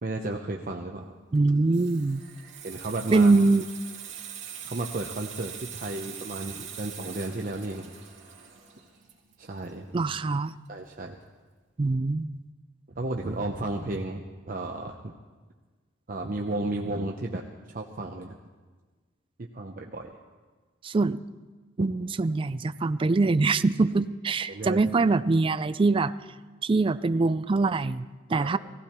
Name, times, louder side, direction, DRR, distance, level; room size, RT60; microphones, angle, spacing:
voice 1, 0.0-1.1 2.6-3.3 4.6-7.9 9.4-9.9 10.7-11.2 13.0-15.1 16.1-18.4 19.5-20.2 21.8-21.9 24.5-24.8 28.3-28.6, right 2 dB, 50° right, 2 dB, 0.8 m, -33 dB
voice 2, 1.3-2.2 3.1-3.6 9.9-10.5 11.8-12.4 20.8-21.2 21.8-26.1 26.6-28.6, right 3 dB, 30° right, 13 dB, 0.4 m, -23 dB
Water tap faucet / Sink (filling or washing), 1.3-10.7 10.9-11.2, right 8 dB, 70° right, 2.5 m, -43 dB
17.5 x 15.5 x 4.4 m, 1.4 s
head